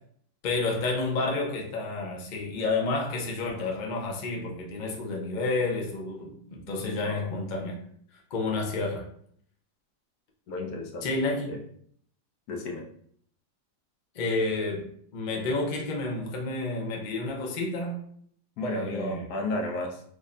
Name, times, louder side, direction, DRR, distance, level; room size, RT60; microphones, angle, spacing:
voice 1, 0.4-7.8 8.3-9.1 11.0-11.5 14.1-14.9 15.1-18.0 18.6-19.3, left 3 dB, 90° left, 0.4 m, -30 dB
voice 2, 10.5-11.2 11.5-11.6 12.5-12.9 18.6-20.2, left 1 dB, 70° left, 1.1 m, -33 dB
3.4 x 2.1 x 3.7 m
omnidirectional pair, 1.8 m